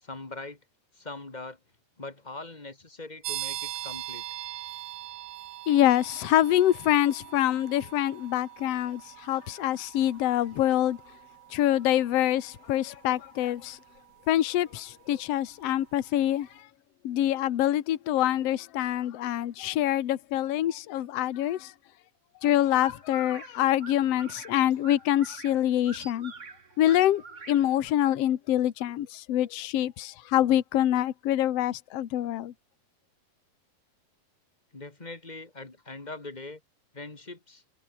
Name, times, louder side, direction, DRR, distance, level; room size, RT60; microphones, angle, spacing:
voice 1, 0.0-0.6 0.9-1.6 2.0-4.2 34.7-36.6 36.9-37.6, left 2 dB, 20° left, 1.1 m, -41 dB
sound 1, 3.2-15.8, right 15 dB, 85° right, 3.2 m, -42 dB
voice 2, 5.7-11.0 11.5-13.8 14.3-16.7 17.0-21.7 22.4-26.3 26.8-27.2 27.5-32.5, left 12 dB, 60° left, 1.7 m, -25 dB
sound 2, 22.4-27.9, right 5 dB, 45° right, 0.9 m, -47 dB
omnidirectional pair, 4.6 m